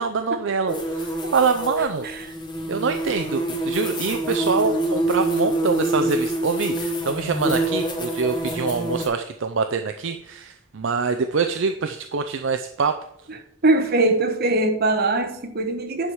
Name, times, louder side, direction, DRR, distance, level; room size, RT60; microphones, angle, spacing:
voice 1, 0.0-2.1 2.7-13.0, right 5 dB, 70° right, 0.5 m, -25 dB
sound 1, 0.7-9.1, right 1 dB, 25° left, 1.5 m, -26 dB
voice 2, 13.6-16.1, right 2 dB, 50° right, 1.2 m, -22 dB
9.8 x 4.7 x 5.5 m
head